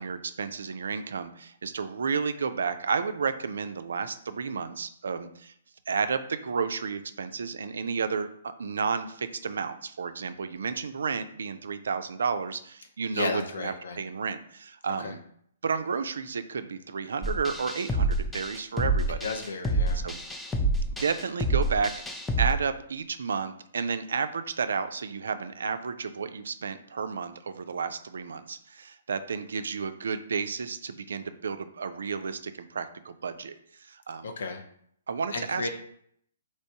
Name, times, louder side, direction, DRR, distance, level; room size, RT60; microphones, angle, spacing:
voice 1, 0.0-5.5 5.9-8.3 8.6-15.2 15.6-19.3 19.9-20.2 21.0-22.0 22.4-34.3 35.1-35.7, right 5 dB, 70° right, 10 dB, 0.3 m, -32 dB
voice 2, 13.1-14.0 15.0-15.2 19.2-20.1 34.2-34.6 35.3-35.7, left 4 dB, 65° left, 6 dB, 0.5 m, -33 dB
sound 1, 17.2-22.5, right 2 dB, 5° left, 0.4 m, -28 dB
3.2 x 3.0 x 2.8 m, 0.66 s
figure-of-eight pair, 130°, 0 cm